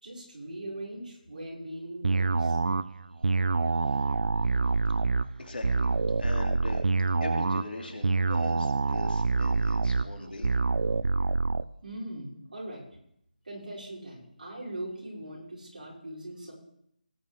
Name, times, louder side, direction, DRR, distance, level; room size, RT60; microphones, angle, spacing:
voice 1, 0.0-2.6 11.8-12.8 13.4-16.5, right 1 dB, 55° right, -6 dB, 5.5 m, -40 dB
sound 1, 2.0-11.6, right 3 dB, 75° right, 0.4 m, -26 dB
voice 2, 5.4-5.9 6.2-6.8 7.2-10.5, left 2 dB, 85° left, 2 dB, 2.8 m, -40 dB
18.5 x 8.8 x 3.5 m, 0.74 s
figure-of-eight pair, 180°, 5 cm